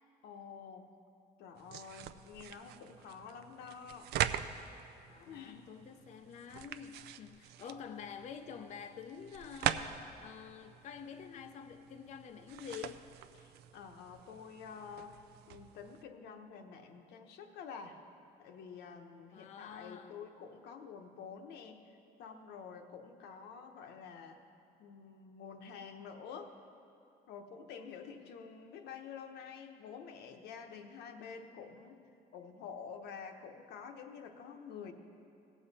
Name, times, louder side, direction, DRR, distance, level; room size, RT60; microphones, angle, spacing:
voice 1, 0.2-0.9 1.4-4.1 5.3-5.6 13.4-18.0 18.4-24.4 24.8-26.6 27.3-32.0 32.3-34.9, left 6 dB, 80° left, 0.9 m, -49 dB
sound 1, 1.6-16.0, right 10 dB, 75° right, 0.4 m, -42 dB
voice 2, 5.1-13.1 19.3-20.2, left 7 dB, 45° left, 0.4 m, -48 dB
17.0 x 7.2 x 4.1 m
cardioid pair, 110°, 17 cm